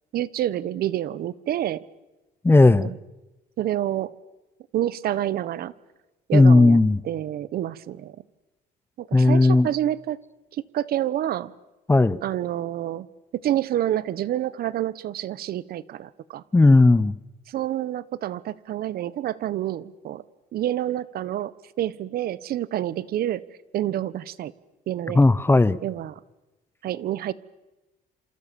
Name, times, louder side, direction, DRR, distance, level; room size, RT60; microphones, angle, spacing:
voice 1, 0.1-1.8 2.7-3.0 3.6-4.1 4.7-5.7 6.3-6.8 7.0-8.2 9.0-10.2 10.5-11.5 12.2-13.1 13.3-16.4 17.5-20.2 20.5-21.5 21.8-23.4 23.7-24.5 24.9-25.2 25.8-26.2 26.8-27.3, right 12 dB, 65° right, 1.2 m, -28 dB
voice 2, 2.4-2.9 6.3-7.0 9.1-9.7 11.9-12.2 16.5-17.1 25.1-25.8, left 2 dB, 15° left, 0.9 m, -15 dB
27.5 x 27.5 x 7.1 m
cardioid pair, 110°, 17 cm